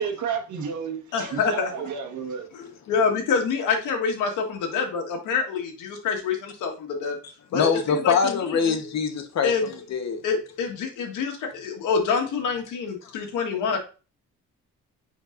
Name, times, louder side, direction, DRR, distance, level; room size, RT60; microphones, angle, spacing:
voice 1, 0.0-2.5, right 7 dB, 70° right, 1.6 m, -31 dB
voice 2, 1.1-1.7 2.5-7.2 7.5-8.7 9.4-9.7 10.2-13.8, left 5 dB, 85° left, 1.8 m, -26 dB
voice 3, 7.5-10.2, left 6 dB, 60° left, 1.3 m, -24 dB
10.0 x 4.5 x 2.6 m
cardioid pair, 90°, 30 cm